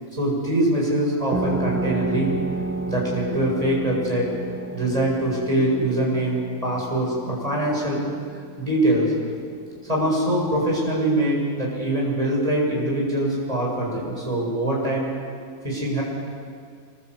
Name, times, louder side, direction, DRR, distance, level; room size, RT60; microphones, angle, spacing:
voice 1, 0.1-2.3 2.8-4.3 4.7-8.0 8.6-9.1 9.8-15.1 15.6-16.0, right 1 dB, 25° right, -3 dB, 8.1 m, -23 dB
sound 1, 1.3-10.5, right 2 dB, 10° right, 1.5 m, -32 dB
26.5 x 22.5 x 8.5 m, 2.1 s
omnidirectional pair, 1.4 m